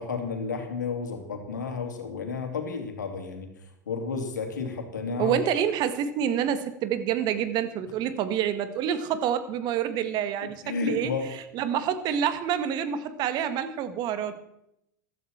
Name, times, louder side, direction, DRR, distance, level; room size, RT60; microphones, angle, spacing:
voice 1, 0.0-3.5 3.9-5.4 10.6-11.3, left 5 dB, 85° left, 4 dB, 3.2 m, -31 dB
voice 2, 5.2-14.4, right 9 dB, 50° right, 11 dB, 1.9 m, -27 dB
15.5 x 13.5 x 4.6 m, 0.78 s
hypercardioid pair, 90°, 9 cm